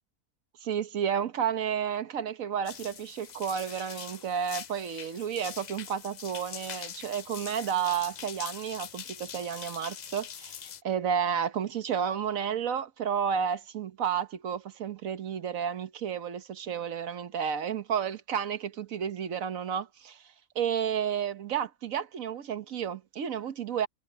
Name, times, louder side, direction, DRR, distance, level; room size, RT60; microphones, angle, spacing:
voice 1, 0.6-10.6 10.8-20.2 20.5-23.9, right 8 dB, 80° right, 1.5 m, -31 dB
sound 1, 2.7-10.8, left 8 dB, 60° left, 0.4 m, -43 dB
omnidirectional pair, 1.4 m